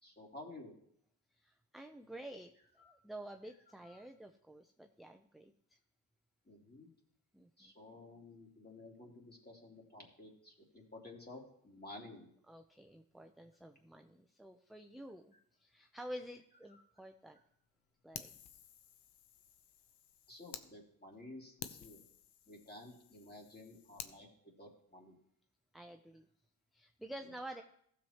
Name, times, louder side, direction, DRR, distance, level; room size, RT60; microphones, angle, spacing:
voice 1, 0.0-0.7 2.8-3.0 3.8-4.0 6.5-6.9 7.6-12.3 16.7-16.8 20.3-22.0 22.5-24.3 24.6-25.1, left 2 dB, 20° left, -1 dB, 3.0 m, -53 dB
voice 2, 1.3-5.8 7.3-7.7 12.5-17.4 18.0-18.3 25.7-26.2 26.7-27.6, right 1 dB, ahead, 5 dB, 0.6 m, -50 dB
Fire, 18.1-20.7 21.1-21.2 21.6-24.2, left 9 dB, 60° left, 0.9 m, -51 dB
15.5 x 7.3 x 3.0 m, 0.69 s
supercardioid pair, 55°, 45 cm